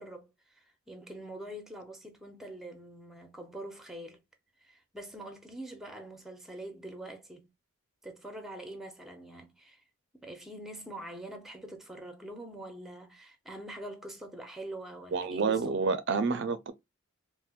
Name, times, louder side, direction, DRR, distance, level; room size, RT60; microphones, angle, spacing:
voice 1, 0.0-4.2 4.6-7.5 8.0-9.8 10.2-15.7, right 1 dB, ahead, 0.6 m, -44 dB
voice 2, 15.1-16.7, right 4 dB, 55° right, 0.4 m, -29 dB
4.2 x 2.0 x 2.3 m
head